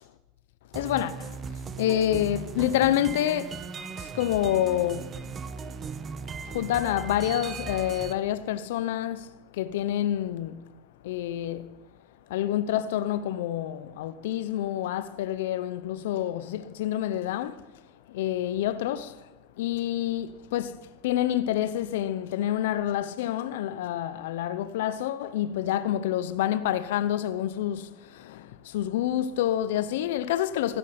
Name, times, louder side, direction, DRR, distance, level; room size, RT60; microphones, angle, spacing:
voice 1, 0.7-1.1 1.8-3.5 4.2-5.0 6.5-9.2 9.6-10.5 11.1-11.6 12.3-17.6 18.1-19.1 19.6-20.7 21.0-27.8 28.7-30.8, left 12 dB, 80° left, 0.7 m, -27 dB
sound 1, 0.7-8.1, right 5 dB, 30° right, 1.1 m, -38 dB
15.5 x 13.0 x 5.9 m
supercardioid pair, 110°, 0 cm